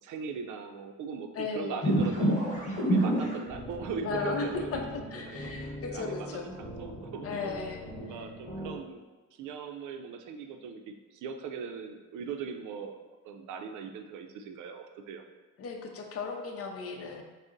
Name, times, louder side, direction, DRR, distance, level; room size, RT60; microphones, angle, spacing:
voice 1, 0.0-2.4 2.8-4.8 5.2-7.6 8.0-9.1 9.3-13.0 13.2-15.2, right 6 dB, 80° right, 5 dB, 0.5 m, -40 dB
voice 2, 1.3-1.8 4.0-6.5 7.2-7.8 15.6-17.2, left 4 dB, 50° left, 3 dB, 0.6 m, -35 dB
sound 1, 1.8-8.8, right 1 dB, 25° left, 1.1 m, -32 dB
6.2 x 2.1 x 2.6 m, 1.2 s
cardioid pair, 90°, 30 cm